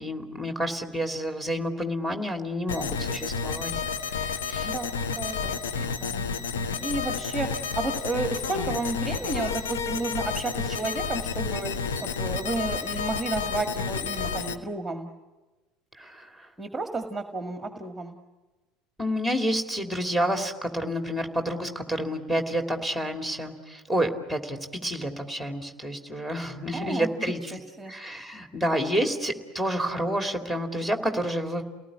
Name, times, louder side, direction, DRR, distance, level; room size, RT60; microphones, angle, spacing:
voice 1, 0.0-3.7 4.1-4.7 15.9-16.5 19.0-31.6, equal, 10° left, 4 dB, 2.8 m, -29 dB
sound 1, 2.7-14.5, left 5 dB, 70° left, 1.2 m, -31 dB
voice 2, 4.6-6.2 6.8-7.5 7.8-11.7 12.0-15.1 16.6-18.2 26.7-27.1 27.5-27.9, right 2 dB, 10° right, 6 dB, 1.8 m, -32 dB
29.5 x 18.5 x 9.7 m, 1.2 s
figure-of-eight pair, 70°, 0 cm